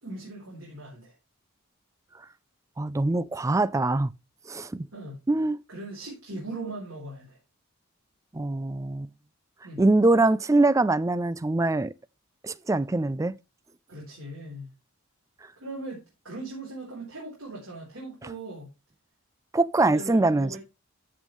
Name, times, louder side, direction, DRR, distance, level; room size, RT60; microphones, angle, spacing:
voice 1, 0.0-1.1 4.9-5.2 5.7-7.4 9.6-9.8 13.9-14.7 15.6-18.7 19.8-20.6, right 2 dB, 65° right, 3.8 m, -39 dB
voice 2, 2.8-4.1 4.5-4.9 5.3-5.6 8.3-9.1 9.8-11.9 12.4-13.3 19.5-20.6, right 2 dB, 15° right, 0.3 m, -23 dB
13.5 x 5.3 x 3.1 m
head